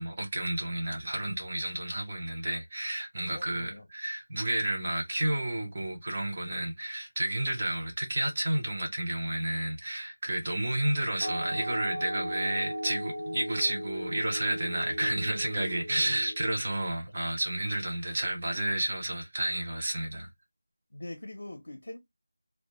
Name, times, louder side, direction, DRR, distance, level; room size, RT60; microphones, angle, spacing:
voice 1, 0.0-20.3, right 1 dB, 20° right, 0.5 m, -31 dB
voice 2, 3.3-3.8 20.9-22.0, left 1 dB, 55° left, 0.6 m, -42 dB
sound 1, 11.2-16.6, equal, 75° right, 0.8 m, -37 dB
2.1 x 2.0 x 2.9 m
figure-of-eight pair, 180°, 0 cm